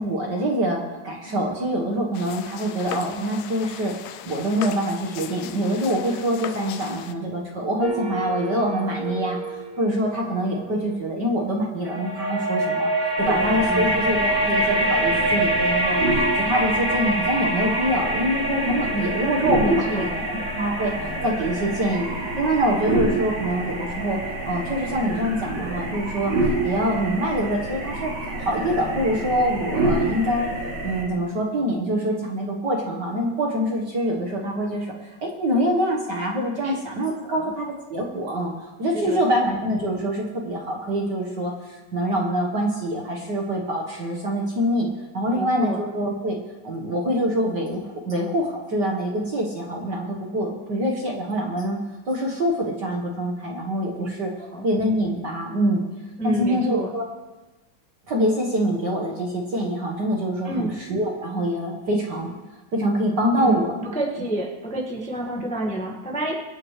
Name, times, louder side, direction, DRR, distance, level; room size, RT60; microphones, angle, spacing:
voice 1, 0.0-3.9 4.2-22.1 22.4-24.2 24.4-30.5 30.8-34.9 35.2-46.4 46.6-51.8 52.1-54.3 54.6-55.8 56.2-57.0 58.1-62.3 62.7-63.7, equal, 45° right, -1 dB, 1.5 m, -25 dB
sound 1, 2.1-7.1, left 10 dB, 75° left, 1.7 m, -37 dB
sound 2, 7.8-11.1 11.8-26.7, right 1 dB, 20° right, 1.4 m, -27 dB
voice 2, 13.2-14.1 19.6-20.3 36.6-36.7 37.2-37.5 38.9-39.2 45.2-45.8 53.9-54.7 56.2-56.9 60.4-60.7 63.4-66.4, right 1 dB, 5° left, -2 dB, 0.9 m, -29 dB
sound 3, 13.2-31.0, right 2 dB, 75° right, 3.7 m, -29 dB
25.0 x 9.6 x 3.3 m, 1.1 s
omnidirectional pair, 3.4 m